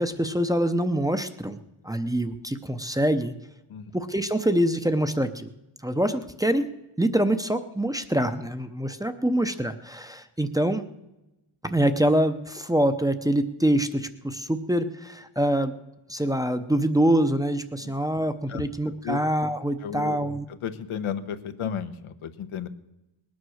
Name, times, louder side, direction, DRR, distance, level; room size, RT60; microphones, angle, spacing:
voice 1, 0.0-1.6 1.8-3.3 3.9-5.5 5.8-6.7 7.0-10.8 11.6-15.8 16.1-20.4, right 1 dB, 10° right, 8 dB, 0.6 m, -25 dB
voice 2, 19.8-20.2 20.5-22.7, left 8 dB, 90° left, 9 dB, 1.1 m, -33 dB
19.5 x 9.4 x 6.3 m, 0.97 s
wide cardioid pair, 135°, 48 cm